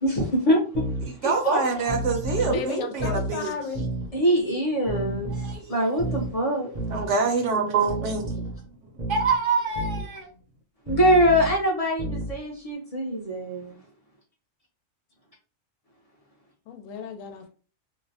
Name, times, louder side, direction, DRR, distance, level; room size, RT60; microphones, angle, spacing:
voice 1, 0.0-0.8 1.2-1.6 2.5-2.6 4.1-5.3 5.7-6.7 10.9-13.7, equal, 40° left, 0.5 m, -23 dB
sound 1, 0.7-1.1 1.9-2.6 3.0-3.3 3.7-4.1 4.9-5.6 6.0-6.3 6.8-7.1 7.9-8.6 9.0-9.3 9.8-10.0 10.9-11.6 12.0-12.3, right 1 dB, 45° right, 0.6 m, -31 dB
voice 2, 1.0-3.5 5.3-5.8 6.9-8.5 8.9-10.3, right 4 dB, 70° right, 0.9 m, -26 dB
voice 3, 2.4-3.8 16.7-17.5, left 6 dB, 85° left, 1.0 m, -34 dB
2.6 x 2.0 x 2.6 m
omnidirectional pair, 1.4 m